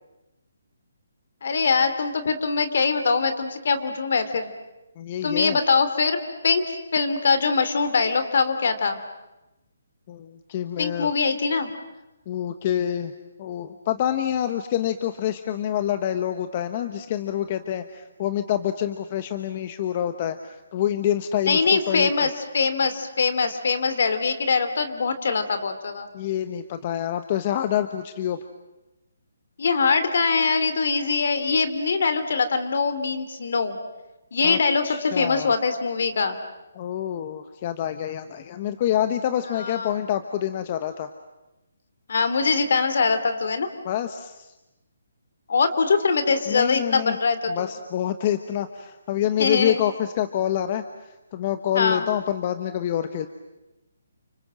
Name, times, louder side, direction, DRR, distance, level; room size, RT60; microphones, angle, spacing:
voice 1, 1.4-4.5 5.2-6.2 6.4-6.6 6.9-9.0 10.8-11.7 21.5-26.1 29.6-33.8 34.3-36.4 39.6-39.9 42.1-43.7 45.5-47.7 49.4-49.8 51.7-52.0, left 4 dB, 60° left, 10 dB, 3.0 m, -22 dB
voice 2, 5.0-5.6 10.1-11.1 12.3-13.1 13.4-22.3 26.1-28.4 34.4-34.6 34.9-35.5 36.7-41.1 43.8-44.5 46.5-47.2 47.5-50.8 51.3-53.3, left 11 dB, 30° left, 9 dB, 1.1 m, -27 dB
30.0 x 26.0 x 7.7 m, 0.99 s
hypercardioid pair, 165°, 0 cm